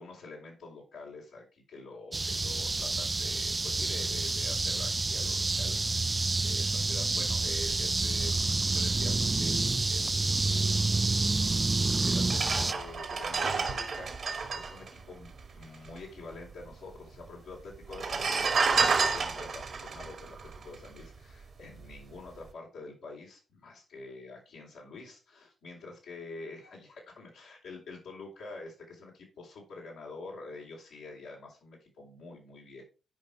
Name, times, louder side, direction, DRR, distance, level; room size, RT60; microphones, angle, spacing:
voice 1, 0.0-11.0 12.0-32.8, left 3 dB, 70° left, -4 dB, 4.4 m, -47 dB
sound 1, 2.1-12.7, right 3 dB, 30° right, 0.4 m, -28 dB
sound 2, 11.6-11.7 12.2-15.9 16.2-16.3 16.4-17.1 17.8-21.3 21.8-22.0, right 4 dB, 55° right, 2.2 m, -30 dB
11.0 x 5.3 x 4.9 m, 0.33 s
hypercardioid pair, 40°, 0 cm